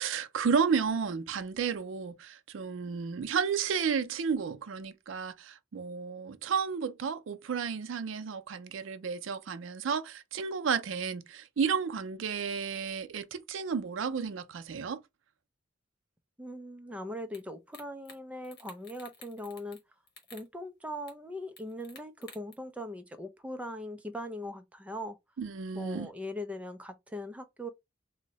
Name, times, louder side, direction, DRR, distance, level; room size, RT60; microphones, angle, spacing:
voice 1, 0.0-15.0 25.4-26.1, right 6 dB, 85° right, 0.4 m, -32 dB
voice 2, 16.4-19.8 20.3-25.2 25.7-27.7, left 1 dB, 5° right, 0.4 m, -40 dB
sound 1, 17.3-17.4 17.7-18.2 18.4-19.8 20.1-20.5 21.1-21.2 21.6-22.5, left 4 dB, 55° left, 1.1 m, -51 dB
2.7 x 2.1 x 3.9 m
head